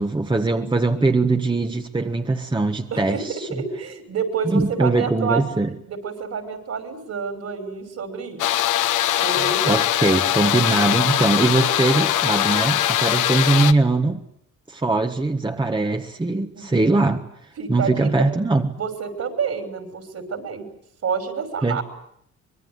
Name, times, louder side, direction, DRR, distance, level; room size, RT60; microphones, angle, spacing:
voice 1, 0.0-3.5 4.5-5.7 9.4-14.2 14.7-17.2 17.7-18.7 21.6-21.8, right 3 dB, 15° right, 1.6 m, -21 dB
voice 2, 2.9-5.4 5.7-8.6 9.2-9.9 16.5-16.7 17.6-18.3 18.8-20.6 21.0-21.8, right 6 dB, 60° right, 6.0 m, -28 dB
sound 1, 8.4-13.7, left 13 dB, 85° left, 1.1 m, -21 dB
25.0 x 21.5 x 9.8 m
cardioid pair, 90°, 30 cm